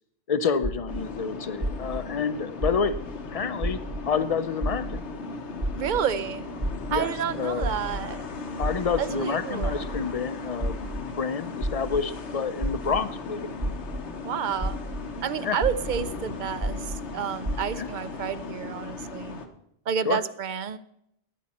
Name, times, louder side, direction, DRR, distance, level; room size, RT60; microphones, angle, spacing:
voice 1, 0.3-3.0 3.3-5.0 6.9-7.7 8.6-13.7 15.4-15.6 17.7-17.9 20.0-20.2, left 6 dB, 40° left, 13 dB, 0.6 m, -29 dB
sound 1, 0.6-1.0 1.6-2.0 2.6-3.0 3.6-4.0 4.6-5.0 5.6-6.0 6.6-7.0 7.6-8.0 8.6-9.0 9.6-10.0 10.6-11.0 11.6-12.0 12.6-13.0 13.6-14.0 14.6-15.0 15.6-16.0 16.6-17.0 17.4-17.6, right 1 dB, 30° right, 1.1 m, -29 dB
sound 2, 0.9-19.5, left 4 dB, 80° left, 1.3 m, -37 dB
voice 2, 5.8-6.5 6.9-8.2 9.0-9.9 14.2-14.8 15.2-19.4 19.9-20.8, right 8 dB, 55° right, 15 dB, 0.6 m, -30 dB
14.5 x 10.0 x 4.2 m, 0.77 s
omnidirectional pair, 1.1 m